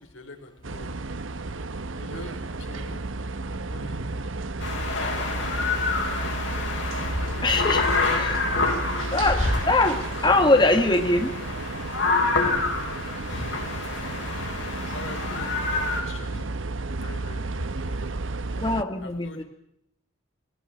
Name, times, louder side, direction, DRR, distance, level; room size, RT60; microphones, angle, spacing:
voice 1, 0.1-0.9 1.9-4.3 13.3-13.6 14.9-17.9 19.0-19.4, left 1 dB, 85° left, 4 dB, 4.9 m, -42 dB
sound 1, 0.6-18.8, right 3 dB, 80° right, 1.0 m, -32 dB
sound 2, 4.6-16.0, left 3 dB, 70° left, 6.9 m, -28 dB
voice 2, 7.4-8.5 9.1-11.3 18.6-19.4, left 2 dB, 20° left, 5 dB, 1.6 m, -22 dB
22.0 x 18.0 x 9.1 m, 0.76 s
head